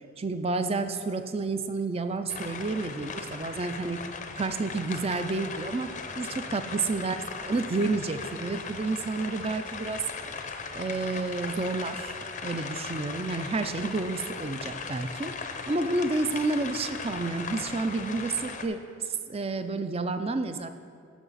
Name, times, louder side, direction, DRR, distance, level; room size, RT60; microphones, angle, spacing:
voice 1, 0.2-4.1 4.4-5.9 6.2-7.2 7.4-10.0 10.8-12.2 12.4-18.8 19.1-20.7, right 3 dB, 25° right, 9 dB, 0.4 m, -30 dB
sound 1, 2.3-18.6, left 4 dB, 35° left, 0.5 m, -38 dB
15.0 x 6.3 x 4.1 m, 2.3 s
head